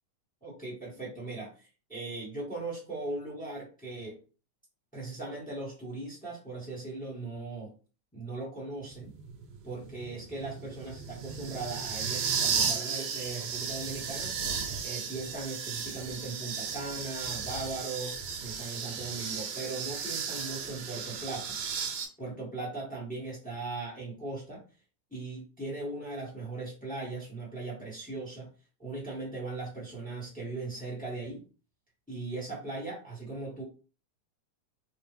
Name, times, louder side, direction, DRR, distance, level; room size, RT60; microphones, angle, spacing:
voice 1, 0.4-4.2 4.9-7.7 8.1-9.1 9.6-14.3 14.8-21.6 22.2-24.6 25.1-28.5 28.8-31.4 32.1-33.6, right 3 dB, 5° left, -4 dB, 1.1 m, -39 dB
sound 1, 8.9-22.0, right 6 dB, 75° right, 1.5 m, -35 dB
4.4 x 2.9 x 3.4 m, 0.35 s
omnidirectional pair, 3.5 m